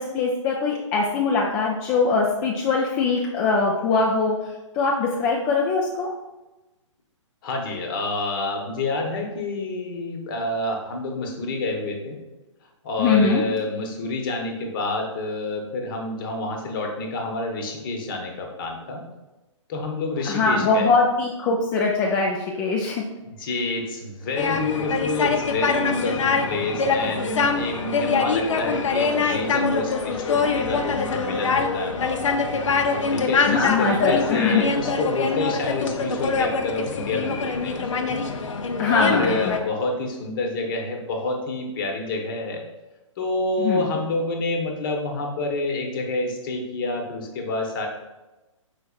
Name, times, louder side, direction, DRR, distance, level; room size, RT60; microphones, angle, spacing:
voice 1, 0.0-4.4 4.7-6.1 13.0-13.5 20.3-23.0 33.5-34.6 38.8-39.6 43.6-44.0, left 4 dB, 20° left, -2 dB, 0.4 m, -22 dB
voice 2, 7.4-12.2 12.8-19.0 19.7-20.9 23.2-32.4 33.1-38.2 38.9-42.6 43.2-47.9, left 2 dB, 40° left, 2 dB, 0.9 m, -28 dB
sound 1, 24.4-39.6, left 4 dB, 70° left, 0.6 m, -24 dB
5.1 x 4.0 x 2.3 m, 1.1 s
figure-of-eight pair, 130°, 17 cm